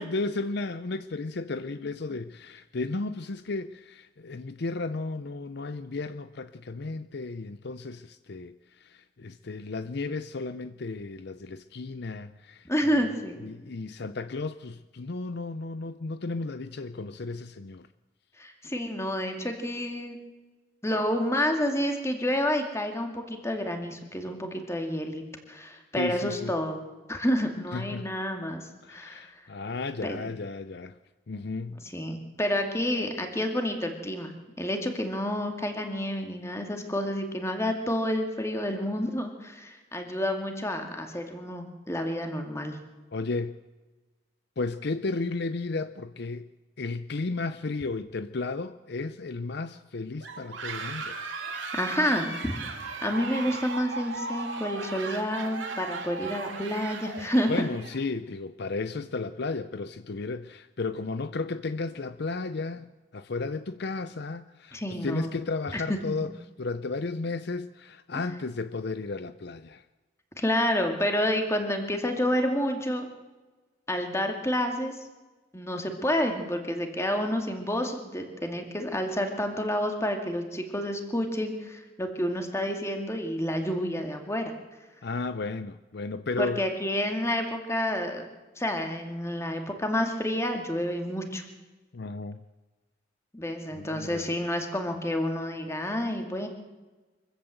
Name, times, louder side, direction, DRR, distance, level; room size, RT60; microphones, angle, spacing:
voice 1, 0.0-12.7 13.4-17.9 26.0-26.5 27.7-28.1 28.8-31.0 31.3-31.8 43.1-43.6 44.6-46.5 46.8-51.2 57.5-62.9 63.1-66.3 66.6-69.8 85.0-86.6 91.9-92.4 93.7-94.3, left 3 dB, 55° left, 0.6 m, -34 dB
voice 2, 12.6-13.4 18.4-20.2 20.8-26.8 27.1-28.6 28.9-29.3 30.0-30.3 31.7-34.3 34.6-42.8 51.7-52.5 52.8-57.7 64.7-65.3 65.7-66.3 70.4-73.1 73.9-75.0 75.5-84.5 86.4-88.2 88.6-91.4 93.3-96.5, equal, 15° left, 2.4 m, -29 dB
sound 1, 50.2-58.1, right 4 dB, 70° right, 2.5 m, -37 dB
24.5 x 15.0 x 8.0 m
head